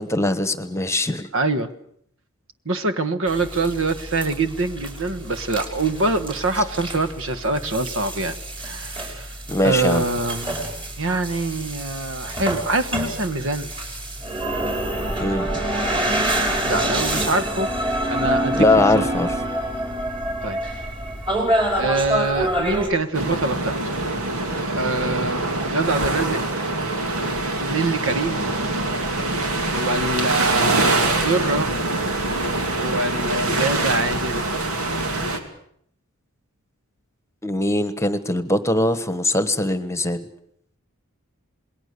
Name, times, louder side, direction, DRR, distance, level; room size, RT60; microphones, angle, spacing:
voice 1, 0.0-1.3 9.5-10.1 15.2-15.5 18.5-19.3 37.4-40.3, left 2 dB, 15° left, 12 dB, 1.3 m, -21 dB
voice 2, 1.3-1.7 2.6-9.3 9.6-10.5 11.0-13.7 16.7-19.1 20.4-20.6 21.7-23.8 24.7-26.4 27.5-28.4 29.7-31.7 32.8-34.4, right 2 dB, 65° right, 11 dB, 1.5 m, -24 dB
sound 1, 3.3-22.9, right 1 dB, 25° right, 5.5 m, -27 dB
sound 2, 23.1-35.4, right 2 dB, 85° right, 2.8 m, -24 dB
27.5 x 21.0 x 6.8 m, 0.68 s
head